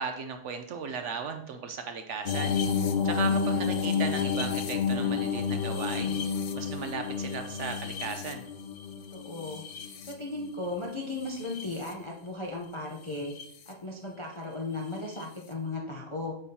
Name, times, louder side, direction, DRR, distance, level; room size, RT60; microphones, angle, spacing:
voice 1, 0.0-2.6 3.0-6.2 6.5-8.4, right 5 dB, 65° right, 6 dB, 0.9 m, -36 dB
sound 1, 2.3-10.6 11.2-11.9 13.1-13.5 15.2-15.3, left 6 dB, 65° left, 0.9 m, -30 dB
voice 2, 2.8-3.6 9.1-9.6 10.0-13.4 13.7-16.3, left 2 dB, 35° left, -1 dB, 0.5 m, -36 dB
7.2 x 5.5 x 2.8 m, 0.67 s
omnidirectional pair, 1.5 m